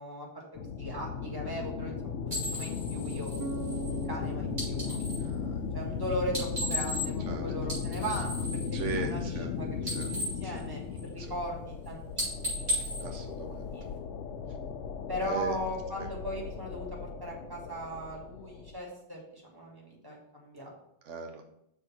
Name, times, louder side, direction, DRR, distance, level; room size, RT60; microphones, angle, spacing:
voice 1, 0.0-3.3 3.8-12.3 12.6-12.8 13.6-13.8 14.4-14.6 15.1-20.7, equal, 20° right, -2 dB, 1.6 m, -39 dB
sound 1, 0.5-18.8, left 6 dB, 85° left, 0.9 m, -36 dB
sound 2, 2.3-5.3 6.2-7.3 7.6-9.5 9.7-11.3 11.7-11.9 12.1-14.0, equal, 40° right, 3.1 m, -36 dB
Bass guitar, 3.4-7.2, right 6 dB, 65° right, 0.8 m, -43 dB
voice 2, 8.7-9.5 10.0-10.1 10.4-10.5 11.2-11.3 13.0-13.6 15.2-15.5 21.0-21.4, right 5 dB, 80° right, 3 dB, 1.1 m, -37 dB
6.4 x 3.5 x 5.7 m, 0.77 s
omnidirectional pair, 1.2 m